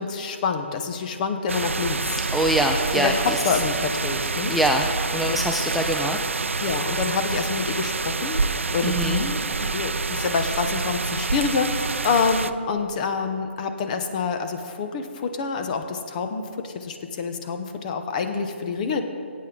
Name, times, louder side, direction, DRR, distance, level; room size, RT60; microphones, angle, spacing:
voice 1, 0.0-2.2 2.9-4.6 5.3-5.4 6.6-8.5 8.7-19.0, left 5 dB, 40° left, 7 dB, 1.0 m, -27 dB
sound 1, 1.5-12.5, right 4 dB, 85° right, 0.5 m, -27 dB
voice 2, 2.3-3.4 4.5-6.3 8.8-9.2, right 1 dB, ahead, 1 dB, 0.4 m, -24 dB
18.5 x 8.6 x 3.9 m, 2.5 s
figure-of-eight pair, 140°, 7 cm